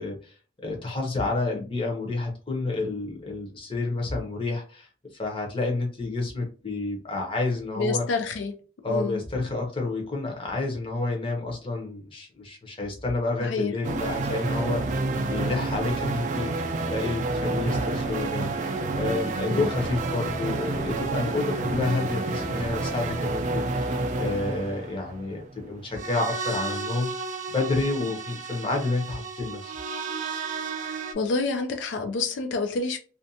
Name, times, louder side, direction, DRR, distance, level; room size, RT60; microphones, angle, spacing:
voice 1, 0.0-8.1 8.8-14.9 15.2-16.6 16.9-27.2 27.5-29.7, left 3 dB, 30° left, 0.7 m, -30 dB
voice 2, 7.7-8.5 8.9-9.2 13.4-13.7 19.4-19.7 28.0-28.1 30.8-33.0, left 3 dB, 80° left, 0.4 m, -28 dB
sound 1, 13.8-31.1, right 3 dB, 40° right, 0.3 m, -30 dB
2.5 x 2.2 x 2.6 m
head